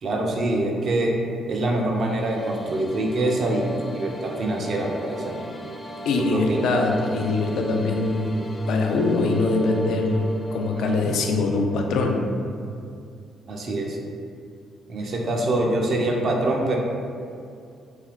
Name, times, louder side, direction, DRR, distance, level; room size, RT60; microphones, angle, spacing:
voice 1, 0.0-1.1 1.5-5.5 6.3-6.6 10.8-11.1 13.5-14.0 14.9-16.8, right 1 dB, 55° right, 0 dB, 0.5 m, -25 dB
sound 1, 1.9-12.0, right 1 dB, 20° left, 0.5 m, -38 dB
voice 2, 6.1-8.4 8.7-12.4, left 3 dB, 80° left, 3 dB, 0.3 m, -23 dB
3.2 x 2.7 x 2.4 m, 2.4 s
cardioid pair, 90°, 0 cm